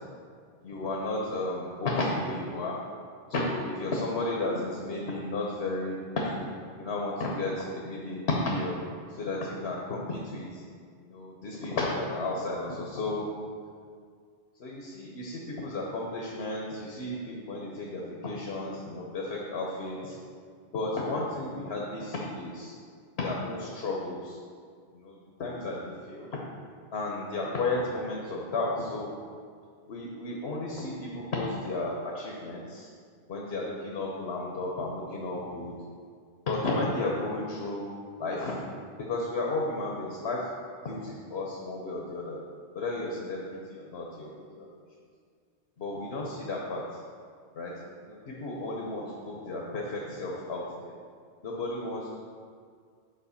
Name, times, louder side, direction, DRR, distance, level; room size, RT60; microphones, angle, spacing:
voice 1, 0.6-2.8 3.3-6.4 6.7-8.8 9.1-10.6 11.0-13.3 14.6-20.2 20.7-22.8 23.2-24.4 24.9-26.3 26.9-29.1 29.9-32.9 33.3-35.8 36.5-37.9 38.1-38.6 39.0-40.5 40.8-42.4 42.7-44.7 45.8-47.0 47.5-51.0 51.4-52.2, left 2 dB, 80° left, -2 dB, 1.2 m, -33 dB
7.8 x 4.4 x 5.7 m, 2.1 s
omnidirectional pair, 1.1 m